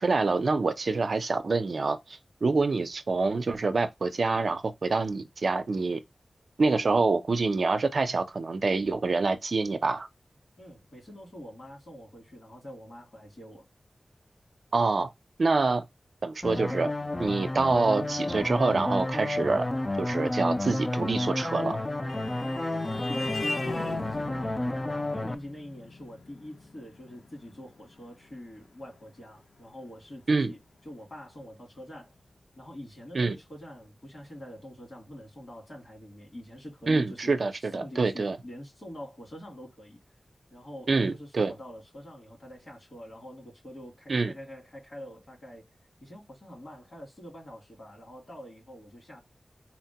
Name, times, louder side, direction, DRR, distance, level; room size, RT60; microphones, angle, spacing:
voice 1, 0.0-6.0 6.6-10.1 14.7-15.1 15.4-15.8 16.2-16.9 17.2-19.7 20.0-21.8 30.3-30.5 33.1-33.4 36.9-38.4 40.9-41.5 44.1-44.3, right 3 dB, 70° right, 0.5 m, -26 dB
voice 2, 10.6-13.7 22.9-30.6 30.8-32.2 32.6-37.5 37.7-40.0 40.5-45.6 46.0-49.2, equal, 50° left, 2.5 m, -45 dB
sound 1, 16.4-25.3, left 1 dB, 30° left, 0.4 m, -31 dB
Vehicle horn car horn honking, 21.9-30.4, left 2 dB, 85° left, 0.5 m, -40 dB
4.1 x 2.2 x 2.8 m
wide cardioid pair, 80°, 0 cm